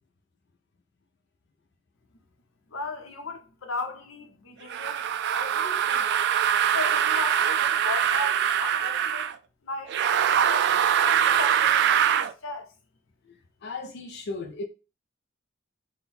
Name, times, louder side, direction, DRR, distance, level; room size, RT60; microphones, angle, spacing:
voice 1, 2.7-6.1 6.7-9.3 9.6-12.7, left 2 dB, 90° left, 0.8 m, -36 dB
sound 1, 4.7-9.3 9.9-12.3, right 9 dB, 60° right, 0.3 m, -23 dB
voice 2, 13.2-14.6, left 3 dB, 60° left, 0.5 m, -36 dB
3.8 x 2.2 x 4.1 m
head